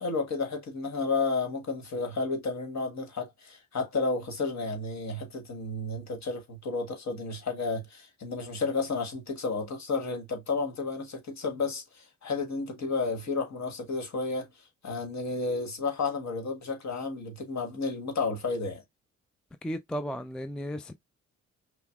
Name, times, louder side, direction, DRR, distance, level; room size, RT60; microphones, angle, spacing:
voice 1, 0.0-14.5 14.8-18.8, left 3 dB, 45° left, 1.5 m, -32 dB
voice 2, 19.6-20.9, equal, ahead, 0.3 m, -34 dB
5.5 x 2.0 x 2.4 m
hypercardioid pair, 45°, 37 cm